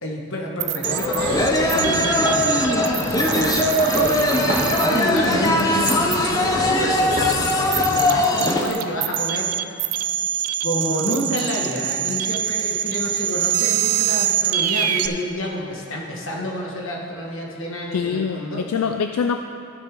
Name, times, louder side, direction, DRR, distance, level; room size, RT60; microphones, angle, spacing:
voice 1, 0.0-2.5 3.0-9.5 10.6-18.6, equal, 60° left, -1 dB, 1.5 m, -29 dB
sound 1, 0.6-15.1, right 11 dB, 80° right, 0.5 m, -25 dB
sound 2, 0.8-8.7, left 1 dB, 15° left, 0.6 m, -21 dB
sound 3, 1.1-8.0, equal, 20° right, 1.5 m, -29 dB
voice 2, 17.9-19.4, left 6 dB, 80° left, 7 dB, 0.4 m, -24 dB
14.5 x 6.7 x 3.8 m, 2.5 s
head